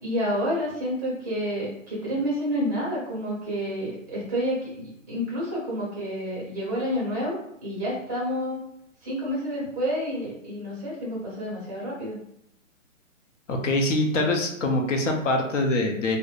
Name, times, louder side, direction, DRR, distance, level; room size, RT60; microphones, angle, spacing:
voice 1, 0.0-8.6 9.0-12.2, equal, 15° right, -6 dB, 0.6 m, -29 dB
voice 2, 13.5-16.2, left 2 dB, 65° left, 2 dB, 0.7 m, -24 dB
2.5 x 2.1 x 2.3 m, 0.74 s
hypercardioid pair, 160°, 39 cm